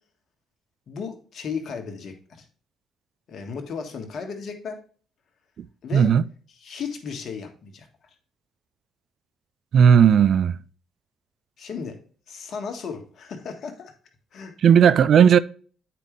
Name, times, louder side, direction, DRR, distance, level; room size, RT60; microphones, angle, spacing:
voice 1, 0.9-2.2 3.3-4.8 5.8-6.1 6.6-7.9 11.6-12.0 12.3-13.9 14.3-14.5, left 5 dB, 60° left, 1.6 m, -34 dB
voice 2, 5.9-6.2 9.7-10.6 14.6-15.4, right 8 dB, 60° right, 0.4 m, -15 dB
8.4 x 5.1 x 3.2 m
hypercardioid pair, 55°, 0 cm